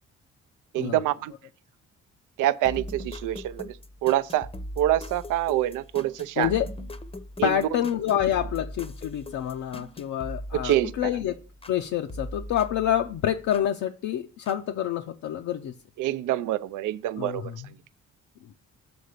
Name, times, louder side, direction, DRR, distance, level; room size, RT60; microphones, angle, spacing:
voice 1, 0.7-1.3 2.4-3.8 4.0-4.5 4.8-6.5 7.4-7.8 10.5-10.9 16.0-17.5, right 13 dB, 85° right, 0.5 m, -26 dB
sound 1, 2.6-11.8 12.1-13.7 14.5-14.6, equal, 20° left, 0.6 m, -40 dB
voice 2, 6.4-6.7 7.4-11.3 11.7-15.8 17.2-17.7, left 10 dB, 70° left, 0.6 m, -27 dB
7.0 x 3.9 x 6.5 m
cardioid pair, 90°, 30 cm